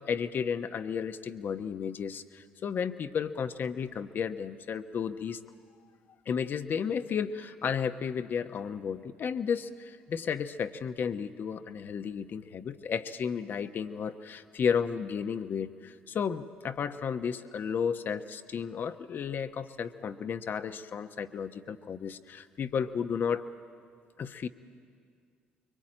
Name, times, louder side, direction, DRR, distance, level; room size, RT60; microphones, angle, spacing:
voice 1, 0.1-5.4 6.3-23.5 24.2-24.5, left 7 dB, 55° left, 10 dB, 1.1 m, -33 dB
24.5 x 23.0 x 8.9 m, 2.2 s
hypercardioid pair, 55°, 4 cm